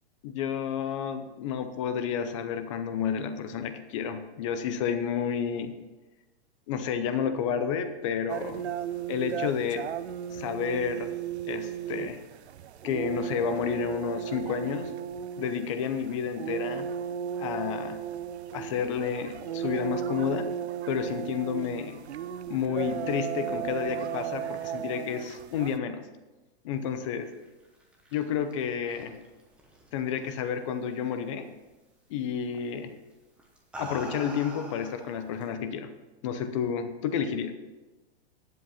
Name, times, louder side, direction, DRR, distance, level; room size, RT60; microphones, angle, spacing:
voice 1, 0.2-5.7 6.7-8.7 9.1-9.9 10.3-11.1 11.5-12.2 12.8-14.9 15.4-16.9 17.4-18.0 18.5-20.5 20.9-22.0 22.5-26.0 26.6-27.3 28.1-29.2 29.9-31.5 32.1-32.9 33.8-35.9 36.2-37.5, left 7 dB, 30° left, 9 dB, 0.7 m, -30 dB
sound 1, 8.3-25.8, right 9 dB, 85° right, 0.7 m, -35 dB
sound 2, 27.6-30.5 30.9-31.3 32.5-32.8 33.4-35.5, equal, 5° right, 0.9 m, -44 dB
10.0 x 7.7 x 5.7 m, 1.2 s
hypercardioid pair, 160°, 32 cm